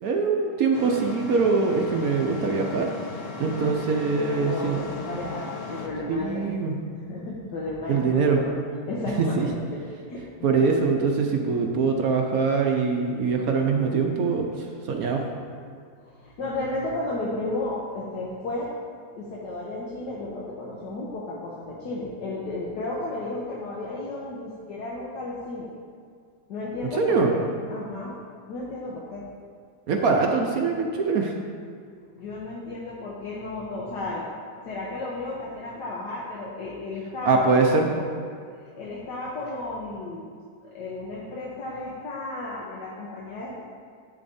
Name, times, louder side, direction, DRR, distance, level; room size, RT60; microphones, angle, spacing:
voice 1, 0.0-2.9 3.4-4.8 6.1-6.8 7.9-8.4 9.2-9.5 10.4-15.3 27.0-27.3 29.9-31.3 37.3-37.8, right 4 dB, 65° right, 2 dB, 1.0 m, -23 dB
sound 1, 0.7-5.9, left 3 dB, 55° left, 1.0 m, -37 dB
voice 2, 3.4-3.8 4.1-6.6 6.9-8.5 8.9-9.8 10.1-10.3 16.0-18.7 19.2-25.7 26.5-27.4 27.7-28.2 28.5-29.2 32.1-34.2 34.6-38.0 38.8-40.3 40.7-43.6, left 2 dB, 70° left, -5 dB, 1.5 m, -33 dB
10.0 x 8.4 x 2.7 m, 2.1 s
omnidirectional pair, 1.9 m